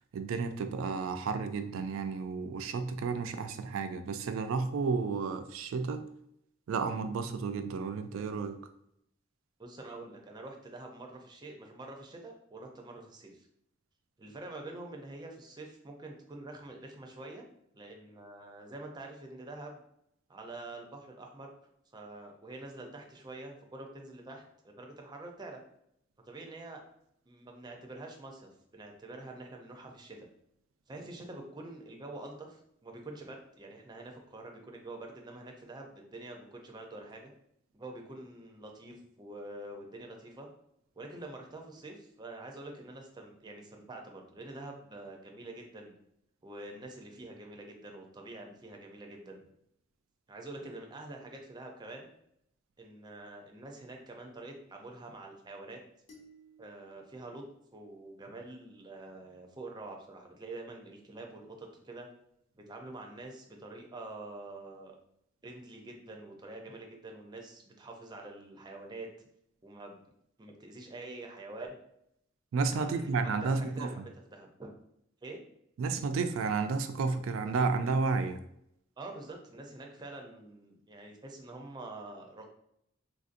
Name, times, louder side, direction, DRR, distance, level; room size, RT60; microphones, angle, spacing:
voice 1, 0.1-6.1 6.7-8.6 72.5-74.0 75.8-78.4, right 4 dB, 90° right, 9 dB, 0.3 m, -32 dB
voice 2, 9.6-13.5 14.2-17.4 17.7-19.8 20.3-21.5 21.9-25.6 26.3-26.8 27.3-30.3 30.9-37.3 37.7-40.5 41.0-45.9 46.4-49.4 50.3-52.1 52.8-55.8 56.6-57.4 57.7-62.1 62.5-64.9 65.4-69.1 69.6-70.0 70.4-71.8 72.7-74.7 75.2-75.4 79.0-82.5, right 2 dB, 20° right, 2 dB, 0.4 m, -46 dB
sound 1, 56.1-58.5, right 1 dB, 35° left, 0.9 m, -60 dB
3.4 x 2.6 x 2.5 m, 0.74 s
head